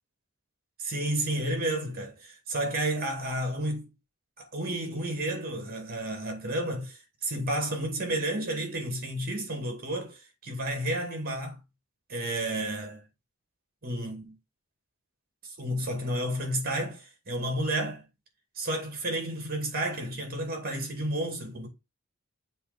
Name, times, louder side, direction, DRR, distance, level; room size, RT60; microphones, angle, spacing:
voice 1, 0.8-3.9 4.4-11.6 12.1-13.0 13.8-14.3 15.4-18.0 18.6-21.7, right 1 dB, 45° right, 2.3 m, -31 dB
7.1 x 3.2 x 5.2 m
head